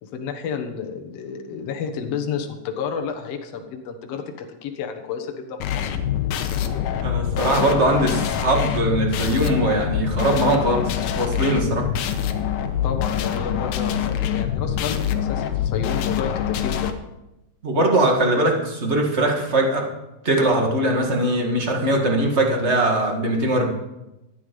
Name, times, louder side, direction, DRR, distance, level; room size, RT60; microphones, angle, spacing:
voice 1, 0.0-5.9 12.8-16.9, left 6 dB, 60° left, 5 dB, 2.1 m, -31 dB
sound 1, 5.6-16.9, left 9 dB, 80° left, 2.4 m, -25 dB
voice 2, 7.0-11.8 17.6-19.8 20.2-23.7, right 1 dB, 30° right, 1 dB, 1.5 m, -21 dB
14.0 x 9.6 x 5.3 m, 0.94 s
omnidirectional pair, 3.8 m